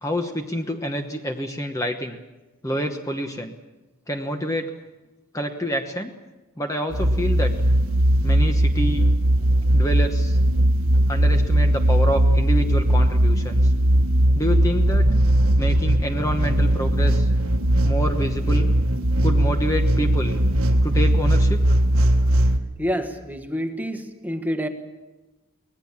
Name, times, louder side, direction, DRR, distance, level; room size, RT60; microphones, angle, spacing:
voice 1, 0.0-2.2 2.6-3.5 4.1-4.7 5.3-6.1 6.6-7.5 8.2-9.0 9.7-10.4 11.1-13.7 14.3-15.1 15.6-17.3 17.8-18.7 19.2-20.4 20.8-21.8, equal, 15° left, 5 dB, 1.1 m, -27 dB
sound 1, 6.9-22.6, right 1 dB, 80° right, 1.6 m, -19 dB
voice 2, 22.8-24.7, equal, 10° right, 6 dB, 1.4 m, -28 dB
24.5 x 18.5 x 7.3 m, 1.1 s
head